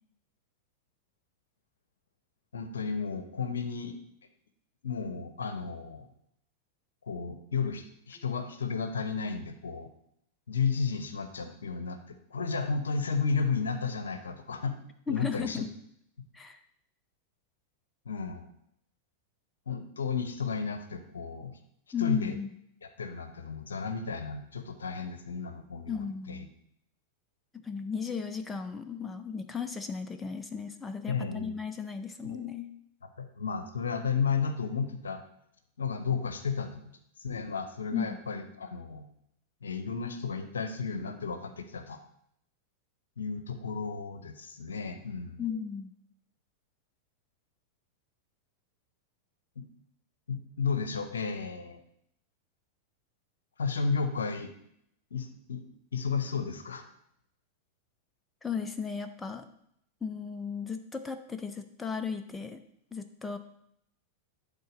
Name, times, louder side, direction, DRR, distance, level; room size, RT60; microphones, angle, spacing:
voice 1, 2.5-3.9 4.8-6.0 7.0-9.9 10.5-14.8 15.1-15.6 18.1-18.5 19.7-21.6 22.0-22.3 22.8-26.4 31.1-31.6 32.2-32.4 33.2-35.2 35.8-36.8 37.2-39.0 39.6-42.0 43.2-45.4 49.6-49.7 50.3-51.8 53.6-54.5 55.1-55.6 55.9-56.8, left 5 dB, 70° left, 9 dB, 0.8 m, -33 dB
voice 2, 15.1-15.7 16.3-16.6 21.9-22.5 25.9-26.5 27.5-32.7 37.9-38.2 45.4-45.9 58.4-59.5 60.0-62.6 62.9-63.4, left 6 dB, 10° left, 7 dB, 0.6 m, -35 dB
10.5 x 3.9 x 5.1 m, 0.72 s
figure-of-eight pair, 90°, 0 cm